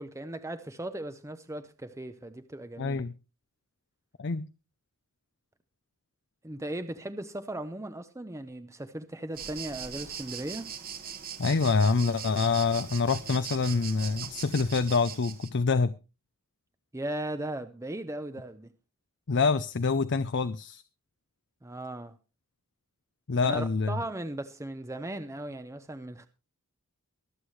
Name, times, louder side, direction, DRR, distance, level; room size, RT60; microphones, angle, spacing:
voice 1, 0.0-3.0 6.4-10.7 16.9-18.7 21.6-22.1 23.4-26.3, right 1 dB, 15° right, 0.7 m, -37 dB
voice 2, 2.8-3.1 4.2-4.5 11.4-15.9 19.3-20.8 23.3-24.0, left 4 dB, 55° left, 0.5 m, -26 dB
sound 1, 9.3-15.5, right 8 dB, 45° right, 1.5 m, -40 dB
23.5 x 8.1 x 3.2 m
head